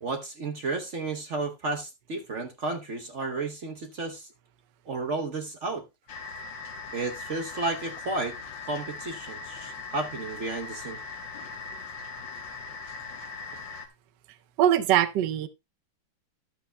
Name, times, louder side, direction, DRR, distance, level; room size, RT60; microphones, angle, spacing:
voice 1, 0.0-4.3 4.9-5.8 6.9-8.4 8.7-11.0, right 3 dB, 50° right, 0.9 m, -32 dB
sound 1, 6.1-13.9, left 4 dB, 70° left, 1.9 m, -40 dB
voice 2, 14.6-15.5, right 11 dB, 70° right, 1.3 m, -22 dB
13.0 x 11.0 x 2.2 m
omnidirectional pair, 2.1 m